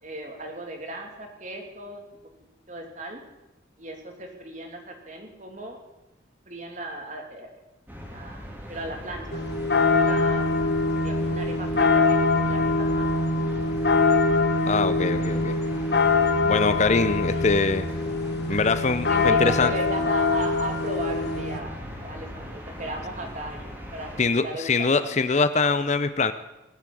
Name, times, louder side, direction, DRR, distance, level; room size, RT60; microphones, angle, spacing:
voice 1, 0.0-2.0 2.7-3.2 3.8-5.8 6.5-7.5 8.1-8.4 8.7-10.7 11.0-13.2 16.8-17.1 19.1-25.2, right 1 dB, 40° right, 3 dB, 2.7 m, -37 dB
sound 1, 7.9-24.2, equal, 10° right, 2.8 m, -38 dB
sound 2, 9.3-21.6, left 3 dB, 55° left, 1.5 m, -23 dB
voice 2, 14.7-15.5 16.4-17.9 18.5-19.7 24.2-26.3, left 4 dB, 35° left, 12 dB, 0.6 m, -23 dB
19.5 x 7.4 x 8.5 m, 1.0 s
head